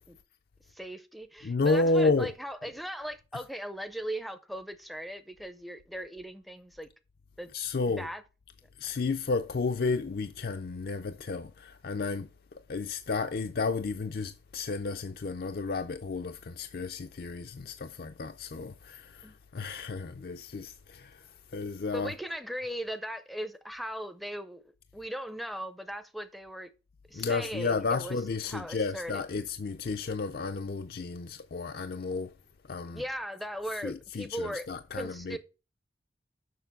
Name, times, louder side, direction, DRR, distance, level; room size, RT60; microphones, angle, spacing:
voice 1, 0.7-6.9 7.4-7.5 8.0-8.2 19.2-19.3 21.9-24.6 24.9-26.7 27.1-28.2 28.5-29.2 32.9-34.7 34.9-35.4, equal, ahead, 0.5 m, -38 dB
voice 2, 1.4-2.3 7.5-8.1 8.8-22.1 27.1-32.3 32.7-33.0 33.8-35.4, left 3 dB, 55° left, 0.4 m, -32 dB
6.8 x 5.9 x 5.7 m
head